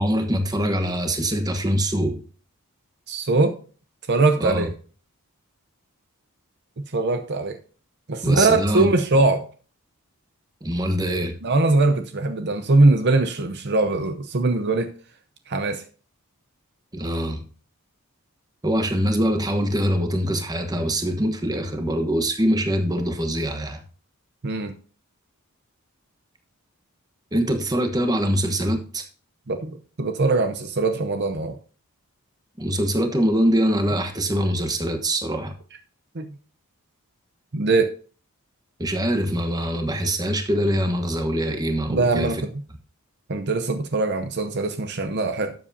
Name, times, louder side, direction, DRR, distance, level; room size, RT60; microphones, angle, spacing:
voice 1, 0.0-2.2 4.4-4.7 8.2-8.9 10.6-11.3 16.9-17.5 18.6-23.8 27.3-29.0 32.6-35.6 38.8-42.4, equal, 15° right, 1.1 m, -23 dB
voice 2, 3.1-3.6 4.1-4.7 6.9-7.6 8.1-9.5 11.4-14.9 15.5-15.8 24.4-24.7 29.5-31.6 36.1-36.3 37.5-37.9 41.9-42.5 43.3-45.5, right 3 dB, 50° right, 0.7 m, -21 dB
12.0 x 7.5 x 2.7 m
head